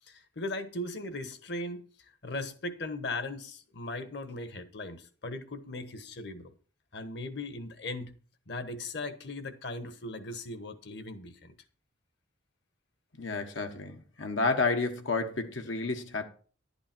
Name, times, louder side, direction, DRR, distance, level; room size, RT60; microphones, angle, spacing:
voice 1, 0.1-6.5 6.9-8.1 8.5-11.5, left 2 dB, 60° left, 1.2 m, -38 dB
voice 2, 13.2-16.2, left 3 dB, 90° left, 1.4 m, -30 dB
11.5 x 8.6 x 4.4 m
head